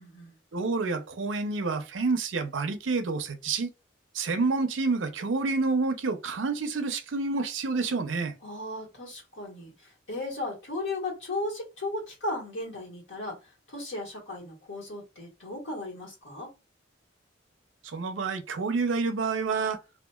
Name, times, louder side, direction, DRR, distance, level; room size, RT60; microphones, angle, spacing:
voice 1, 0.0-0.4 8.4-13.4 13.7-16.5, left 2 dB, 75° left, 1.4 m, -36 dB
voice 2, 0.5-3.7 4.1-8.4 17.8-19.8, right 4 dB, 75° right, 0.6 m, -28 dB
2.8 x 2.4 x 2.3 m
head